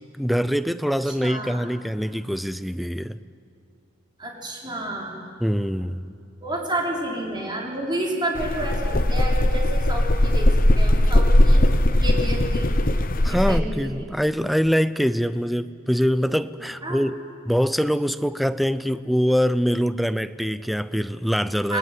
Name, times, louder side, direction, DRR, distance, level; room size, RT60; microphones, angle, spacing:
voice 1, 0.2-3.2 5.4-6.1 13.2-17.2 17.5-21.8, equal, ahead, 0.6 m, -24 dB
voice 2, 1.0-1.7 4.2-5.2 6.4-10.5 10.7-11.6 12.0-12.7 13.3-14.1 16.8-17.0 21.7-21.8, right 1 dB, 25° right, 5.4 m, -30 dB
sound 1, 8.3-13.6, left 1 dB, 45° left, 1.0 m, -19 dB
28.0 x 21.5 x 9.8 m
head